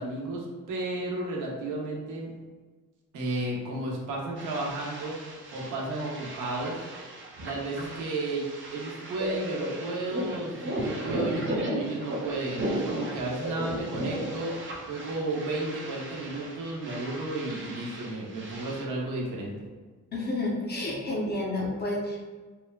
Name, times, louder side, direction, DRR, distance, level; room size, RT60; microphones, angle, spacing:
voice 1, 0.0-2.3 3.1-5.1 5.5-6.8 7.4-14.5 14.9-19.5, right 2 dB, 90° right, -3 dB, 0.7 m, -33 dB
sound 1, 4.4-18.9, right 2 dB, 40° right, 0.4 m, -43 dB
sound 2, 9.2-14.5, right 1 dB, 60° right, 1.0 m, -31 dB
voice 2, 20.1-22.2, left 2 dB, 35° left, -2 dB, 0.6 m, -30 dB
3.0 x 2.1 x 2.2 m, 1.4 s
cardioid pair, 120°, 30 cm